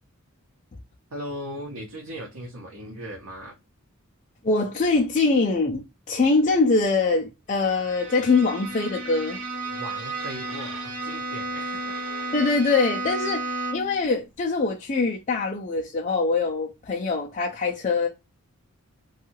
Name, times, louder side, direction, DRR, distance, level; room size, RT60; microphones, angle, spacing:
voice 1, 1.1-3.5 9.7-12.0, equal, 90° right, 0.8 m, -38 dB
voice 2, 4.4-9.4 12.3-18.1, left 3 dB, 35° left, 0.4 m, -23 dB
Bowed string instrument, 7.6-14.0, right 2 dB, 60° right, 1.1 m, -33 dB
2.6 x 2.3 x 2.7 m
head